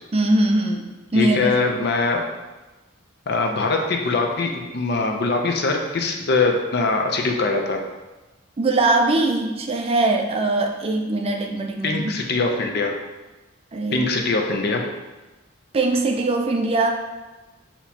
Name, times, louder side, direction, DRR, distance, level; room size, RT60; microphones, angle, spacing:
voice 1, 0.1-1.5 8.6-12.1 13.7-14.0 15.7-16.9, right 2 dB, 30° right, 3 dB, 0.4 m, -21 dB
voice 2, 1.1-2.3 3.3-7.8 11.8-12.9 13.9-14.8, left 3 dB, 55° left, 2 dB, 0.6 m, -22 dB
6.1 x 2.9 x 2.8 m, 1.1 s
head